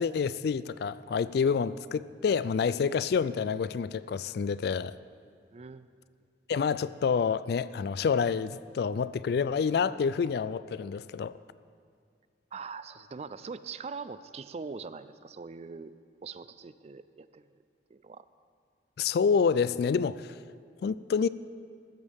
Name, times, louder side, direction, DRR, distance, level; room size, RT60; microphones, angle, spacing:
voice 1, 0.0-4.9 6.5-11.3 19.0-20.4 20.8-21.3, left 6 dB, 60° left, 17 dB, 0.3 m, -28 dB
voice 2, 5.5-5.9 12.5-15.9 16.2-17.5 17.9-18.2, right 5 dB, 35° right, 14 dB, 0.4 m, -42 dB
14.5 x 13.5 x 3.6 m, 2.2 s
head